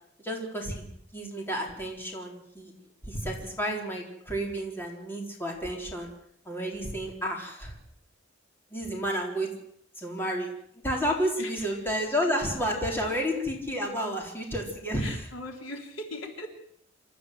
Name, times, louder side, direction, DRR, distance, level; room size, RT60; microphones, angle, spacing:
voice 1, 0.2-0.8 1.1-2.7 3.0-6.1 6.4-7.7 8.7-9.5 10.0-10.5 10.8-15.1, equal, 10° left, 0 dB, 4.3 m, -31 dB
voice 2, 11.3-11.9 12.8-12.9 15.0-16.5, left 1 dB, 80° left, 2 dB, 3.7 m, -40 dB
27.0 x 13.5 x 8.0 m, 0.70 s
head